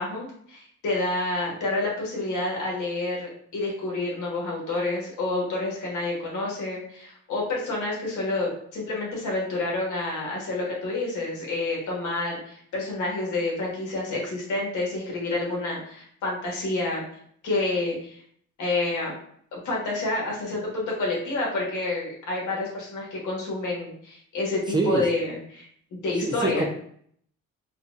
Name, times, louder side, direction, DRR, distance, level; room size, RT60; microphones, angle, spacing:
voice 1, 0.0-17.0 17.4-18.2 18.6-19.2 19.5-26.7, left 2 dB, 75° left, -3 dB, 1.4 m, -29 dB
voice 2, 24.7-25.0 26.2-26.7, right 2 dB, 15° right, 0 dB, 0.4 m, -25 dB
4.3 x 2.3 x 2.5 m, 0.63 s
cardioid pair, 90°, 30 cm